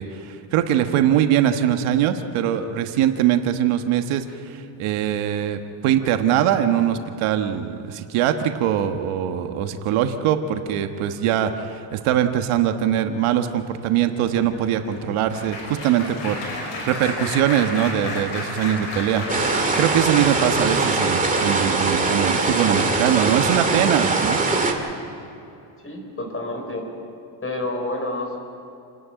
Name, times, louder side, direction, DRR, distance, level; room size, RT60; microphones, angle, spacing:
voice 1, 0.0-19.3 19.7-24.4, right 10 dB, 80° right, 7 dB, 1.4 m, -22 dB
Applause, 13.6-21.9 22.5-22.8 23.0-23.2, left 2 dB, 70° left, 6.4 m, -33 dB
sound 1, 19.3-24.7, right 3 dB, 15° right, 2.3 m, -22 dB
voice 2, 25.8-26.8 27.4-28.4, left 2 dB, 25° left, 2 dB, 4.9 m, -29 dB
28.5 x 11.0 x 9.1 m, 2.7 s
cardioid pair, 130°, 49 cm